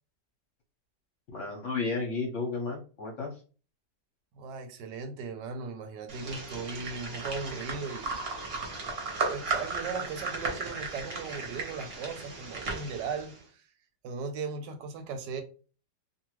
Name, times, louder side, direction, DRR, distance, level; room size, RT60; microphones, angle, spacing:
voice 1, 1.3-3.4, left 4 dB, 60° left, 0.9 m, -33 dB
voice 2, 4.3-8.2 9.2-13.6 14.0-15.4, right 5 dB, 85° right, 1.2 m, -37 dB
sound 1, 6.1-13.4, right 3 dB, 45° right, 0.8 m, -35 dB
2.7 x 2.5 x 2.9 m
omnidirectional pair, 1.9 m